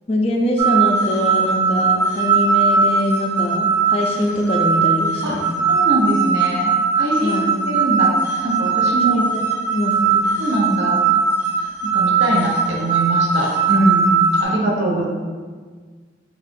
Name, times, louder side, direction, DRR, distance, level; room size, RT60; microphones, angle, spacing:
voice 1, 0.1-5.7 7.2-7.5 9.1-9.5 9.7-10.3, left 1 dB, 30° left, 1 dB, 0.4 m, -23 dB
sound 1, 0.6-14.4, right 5 dB, 40° right, 1.1 m, -19 dB
voice 2, 5.7-8.1 8.4-9.2 10.4-11.0 11.9-15.1, right 1 dB, 70° right, -3 dB, 0.7 m, -22 dB
3.6 x 2.4 x 3.5 m, 1.5 s
head